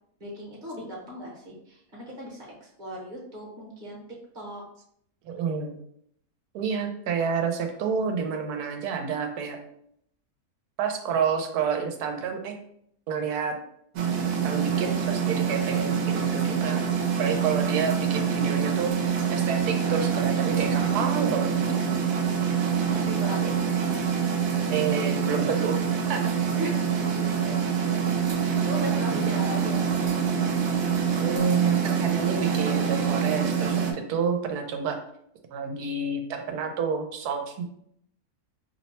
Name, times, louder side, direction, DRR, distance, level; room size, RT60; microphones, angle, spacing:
voice 1, 0.2-4.0 4.3-4.6 20.9-21.3 22.7-23.6 26.6-27.6 27.9-30.2, equal, 40° right, -3 dB, 0.9 m, -38 dB
voice 2, 5.3-5.8 6.5-9.6 10.8-12.6 13.1-13.5 14.4-16.8 17.2-21.8 24.7-25.8 26.1-26.3 29.1-29.3 31.1-35.0 35.5-37.6, right 6 dB, 90° right, 5 dB, 1.1 m, -29 dB
sound 1, 14.0-33.9, right 7 dB, 70° right, 1.0 m, -25 dB
2.9 x 2.1 x 4.1 m, 0.70 s
omnidirectional pair, 1.6 m